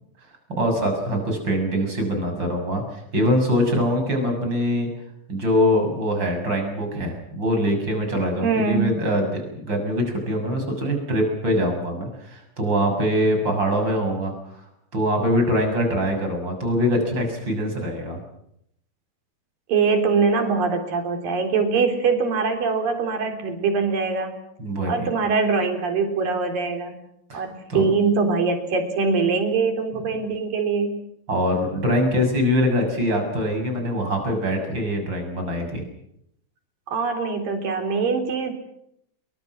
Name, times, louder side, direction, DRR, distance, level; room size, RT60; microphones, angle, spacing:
voice 1, 0.5-4.9 5.3-14.6 14.9-18.2 24.6-25.1 27.3-27.4 27.7-27.9 31.3-35.8, equal, 30° right, 4 dB, 7.6 m, -23 dB
voice 2, 8.4-9.0 19.7-24.3 24.9-26.9 27.3-31.0 36.9-38.5, right 4 dB, 75° right, 5 dB, 5.4 m, -23 dB
28.5 x 23.5 x 6.2 m, 0.74 s
omnidirectional pair, 4.0 m